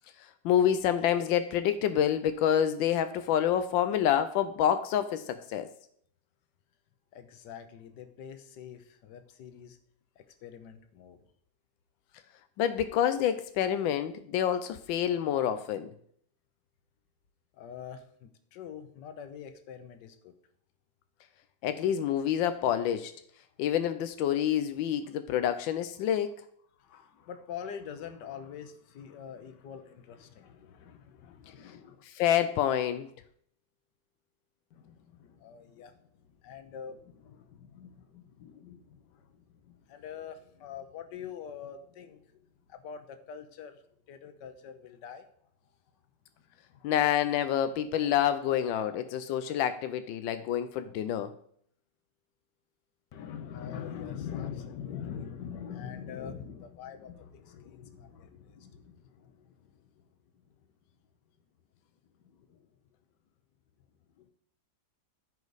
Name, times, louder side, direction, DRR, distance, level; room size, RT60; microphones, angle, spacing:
voice 1, 0.4-5.7 12.6-15.9 21.6-23.1 23.6-26.3 32.1-33.1 46.8-51.3, left 10 dB, 90° left, 10 dB, 1.3 m, -27 dB
voice 2, 7.1-9.8 10.2-11.2 17.5-20.3 26.8-32.0 34.7-42.4 42.7-45.2 46.7-46.9 48.9-49.2 53.1-60.0 60.3-60.5 62.2-62.7 64.2-64.3, left 8 dB, 70° left, 9 dB, 1.5 m, -44 dB
14.0 x 5.0 x 4.0 m, 0.64 s
omnidirectional pair, 2.0 m